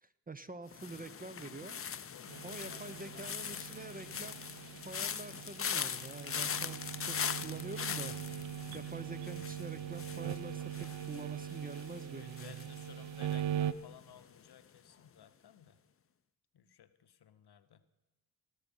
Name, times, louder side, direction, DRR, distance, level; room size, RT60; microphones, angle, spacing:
voice 1, 0.0-1.8 2.4-4.4 4.9-7.2 7.4-8.2 8.7-12.7, right 3 dB, 20° right, 13 dB, 0.5 m, -46 dB
sound 1, 0.7-13.8 14.0-14.5, left 7 dB, 30° left, 0.5 m, -41 dB
voice 2, 2.1-4.2 12.1-15.8 16.5-17.8, left 10 dB, 60° left, 12 dB, 0.8 m, -58 dB
sound 2, 2.3-13.7, right 10 dB, 80° right, 0.6 m, -41 dB
18.5 x 6.3 x 5.3 m, 1.1 s
supercardioid pair, 40°, 45 cm